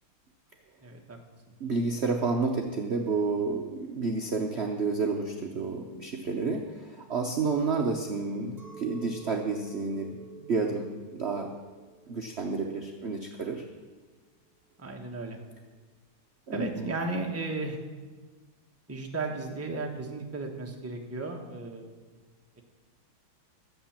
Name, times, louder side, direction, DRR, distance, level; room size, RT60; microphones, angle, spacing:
voice 1, 0.8-1.2 14.8-15.4 16.5-17.8 18.9-21.9, right 3 dB, 10° right, 1 dB, 0.7 m, -34 dB
voice 2, 1.6-11.5 12.1-13.6 16.5-16.9, right 4 dB, 65° right, 2 dB, 0.6 m, -30 dB
Chink clink, 8.6-14.0, right 6 dB, 30° right, 1.4 m, -50 dB
12.5 x 7.7 x 7.3 m, 1.4 s
omnidirectional pair, 2.3 m